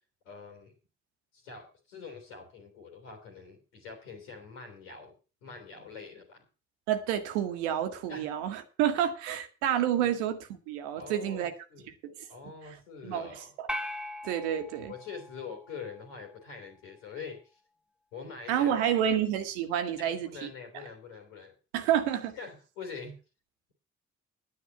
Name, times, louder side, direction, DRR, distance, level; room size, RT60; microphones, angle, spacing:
voice 1, 0.2-0.7 1.3-5.1 5.4-6.4 8.1-8.3 9.9-10.1 10.9-11.9 12.3-13.5 14.9-17.6 18.1-18.9 20.0-21.5 22.3-23.2, left 5 dB, 75° left, 3.1 m, -44 dB
voice 2, 6.9-11.5 12.0-12.1 12.6-12.8 13.0-13.7 14.2-14.9 18.5-20.8 21.7-22.4, right 10 dB, 70° right, 1.4 m, -29 dB
sound 1, 13.7-16.2, left 1 dB, 5° right, 1.0 m, -40 dB
11.0 x 9.9 x 5.6 m
figure-of-eight pair, 40°, 36 cm